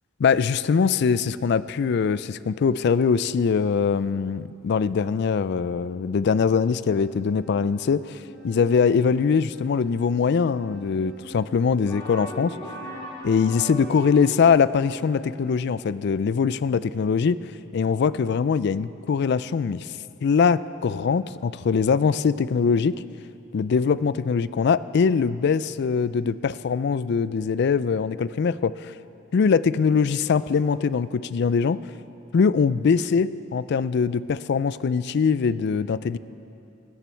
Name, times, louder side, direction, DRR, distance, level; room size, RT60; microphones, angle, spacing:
voice 1, 0.2-8.2 8.4-12.6 13.2-17.4 17.7-19.9 20.2-23.0 23.5-28.9 29.3-31.8 32.3-36.2, left 5 dB, 55° left, 17 dB, 0.3 m, -22 dB
sound 1, 6.9-15.6, left 1 dB, 70° left, 3.9 m, -46 dB
sound 2, 11.8-14.7, equal, 20° left, 2.0 m, -38 dB
16.5 x 13.0 x 4.5 m, 2.7 s
head